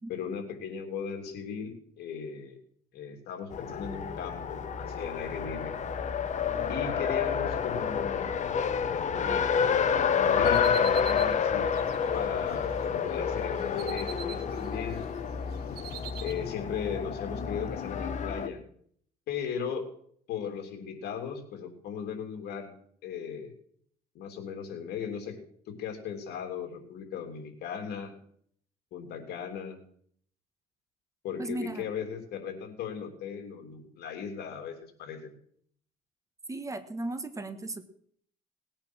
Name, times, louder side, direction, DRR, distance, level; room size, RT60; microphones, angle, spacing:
voice 1, 0.1-2.6 2.9-5.7 6.7-8.3 9.2-11.7 12.1-15.0 16.2-18.6 19.3-19.9 20.3-22.7 23.0-23.5 24.1-25.4 25.7-28.1 28.9-29.8 31.2-35.3, left 7 dB, 75° left, 5 dB, 3.3 m, -37 dB
Race car auto racing, 3.5-18.5, left 7 dB, 45° left, 1.3 m, -29 dB
sound 1, 9.6-12.9 13.3-15.1 15.3-16.3, right 9 dB, 70° right, 1.8 m, -45 dB
voice 2, 31.4-31.8 36.5-37.8, right 2 dB, 20° right, 10 dB, 1.5 m, -36 dB
19.5 x 8.9 x 6.4 m, 0.63 s
cardioid pair, 110°, 17 cm